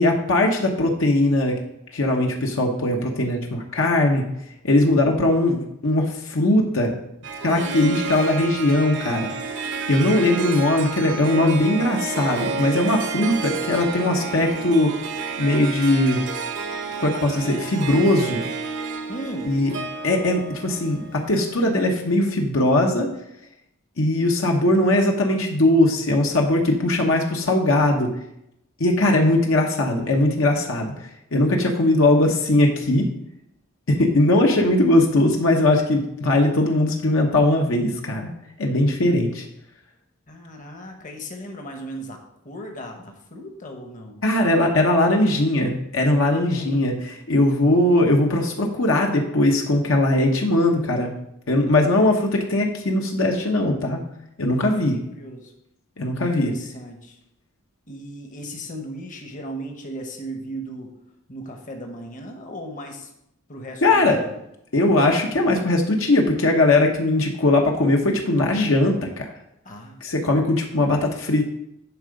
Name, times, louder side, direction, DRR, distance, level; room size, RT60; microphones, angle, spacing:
voice 1, 0.0-1.5 1.9-4.2 4.6-6.9 7.4-14.9 15.4-16.2 17.0-18.4 19.5-19.7 20.0-23.1 24.0-28.1 28.8-33.1 33.9-38.3 38.6-39.5 44.2-46.9 47.3-51.1 51.5-54.0 54.4-55.0 56.0-56.5 63.8-64.2 64.7-69.3 70.0-71.4, left 1 dB, 65° left, 1 dB, 1.0 m, -20 dB
Harp, 7.2-21.7, right 4 dB, 60° right, 0.9 m, -30 dB
voice 2, 19.1-19.6 40.3-44.2 46.3-46.9 54.6-55.5 56.2-57.2 57.9-60.9 61.3-63.1 63.5-64.4 69.6-70.0, equal, 35° left, 3 dB, 1.1 m, -36 dB
10.5 x 3.8 x 5.2 m, 0.79 s
head